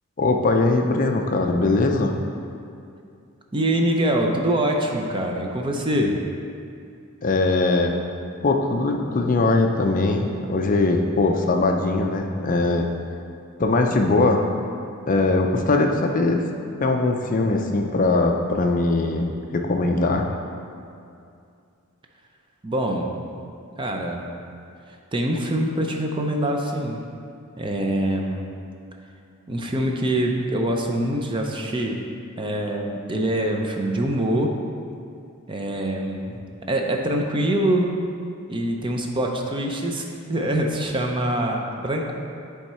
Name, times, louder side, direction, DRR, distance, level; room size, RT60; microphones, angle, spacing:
voice 1, 0.2-2.1 7.2-7.9 8.4-12.9 13.6-14.4 15.1-16.4 16.8-20.3, left 2 dB, 35° left, 3 dB, 0.4 m, -21 dB
voice 2, 3.5-6.2 22.6-23.3 23.8-24.2 24.9-27.0 27.6-28.5 29.5-32.0 32.4-34.6 35.5-36.4 36.7-37.9 38.5-42.1, right 1 dB, 20° right, 1 dB, 0.5 m, -24 dB
10.0 x 3.5 x 4.3 m, 2.4 s
head